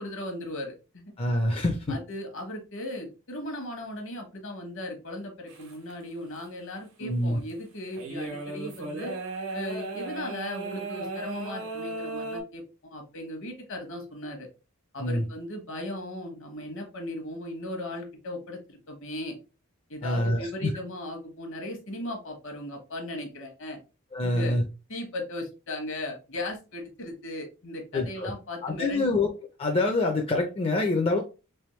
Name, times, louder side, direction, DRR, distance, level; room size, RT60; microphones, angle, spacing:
voice 1, 0.0-1.1 1.9-9.1 9.5-14.5 14.9-19.4 19.9-23.8 24.2-24.6 24.9-29.1, left 1 dB, 60° left, 4 dB, 1.0 m, -37 dB
voice 2, 1.2-2.0 7.0-7.4 15.0-15.2 20.0-20.7 24.1-24.6 27.9-28.3 28.6-29.3 29.6-31.2, left 2 dB, 25° left, 2 dB, 0.4 m, -26 dB
sound 1, 5.5-5.9 6.4-6.5 7.5-7.6 7.9-12.4, right 3 dB, 90° right, 1.3 m, -36 dB
3.4 x 3.0 x 3.0 m, 0.31 s
head